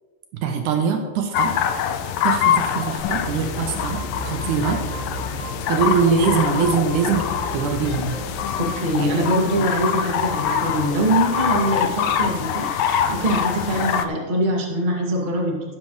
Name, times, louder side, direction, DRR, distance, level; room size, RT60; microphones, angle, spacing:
voice 1, 0.4-1.5 2.2-4.8 5.7-7.3 7.5-8.1 9.0-9.3, right 6 dB, 85° right, 4 dB, 1.7 m, -22 dB
sound 1, 1.3-14.1, left 8 dB, 80° left, 2.2 m, -24 dB
sound 2, 3.0-9.1, right 1 dB, 65° left, 4.3 m, -34 dB
voice 2, 8.6-15.7, right 1 dB, 50° right, -2 dB, 0.5 m, -23 dB
17.0 x 7.7 x 3.1 m, 1.4 s
omnidirectional pair, 4.5 m